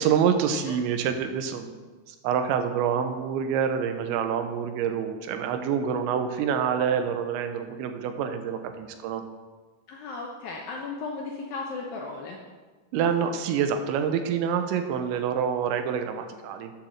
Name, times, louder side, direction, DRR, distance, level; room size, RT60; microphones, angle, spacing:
voice 1, 0.0-1.7 2.1-9.2 12.9-16.7, right 7 dB, 85° right, 7 dB, 3.1 m, -27 dB
voice 2, 9.9-12.4, left 4 dB, 75° left, 0 dB, 2.2 m, -35 dB
9.7 x 7.3 x 6.5 m, 1.4 s
omnidirectional pair, 5.2 m